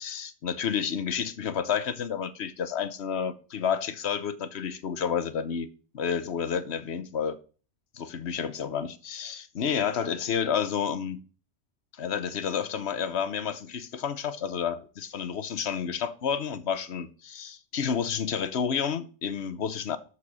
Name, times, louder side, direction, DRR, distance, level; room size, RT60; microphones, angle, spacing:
voice 1, 0.0-5.7 5.9-7.4 7.9-11.2 12.0-20.0, left 7 dB, 65° left, 1.2 m, -30 dB
13.0 x 4.7 x 6.2 m
omnidirectional pair, 1.2 m